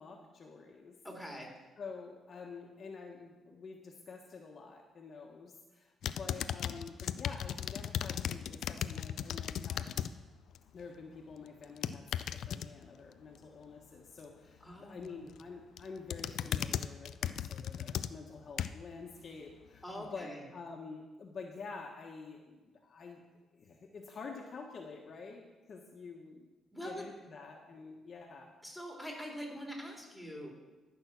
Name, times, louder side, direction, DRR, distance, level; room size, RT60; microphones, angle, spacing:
voice 1, 0.0-0.9 1.8-10.1 10.7-23.2 23.5-26.4 26.8-28.5, left 4 dB, 50° left, 0 dB, 1.3 m, -48 dB
voice 2, 1.0-1.5 14.6-15.2 19.8-20.4 26.7-27.0 28.6-30.7, equal, ahead, -1 dB, 3.4 m, -44 dB
sound 1, 6.0-10.1 10.5-10.8 11.6-12.7 15.0-15.4 15.8-18.9 19.5-19.6, left 9 dB, 75° left, 0.4 m, -37 dB
13.5 x 6.2 x 6.1 m, 1.2 s
cardioid pair, 90°, 0 cm